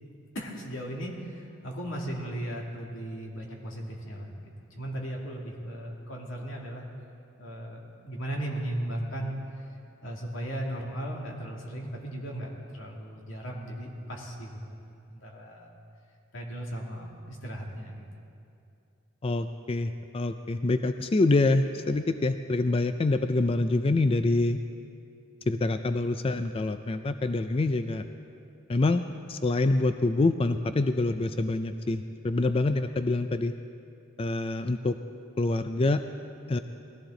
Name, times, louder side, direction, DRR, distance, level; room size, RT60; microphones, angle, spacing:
voice 1, 0.3-6.9 7.4-9.4 10.0-14.8 15.1-15.7 16.3-18.2, right 1 dB, 90° left, -1 dB, 2.5 m, -36 dB
voice 2, 19.2-24.6 25.5-28.0 28.7-29.0 29.3-33.5 34.2-34.9 35.4-36.0 36.5-36.6, left 2 dB, 30° left, 9 dB, 0.4 m, -26 dB
20.5 x 15.0 x 3.9 m, 2.6 s
head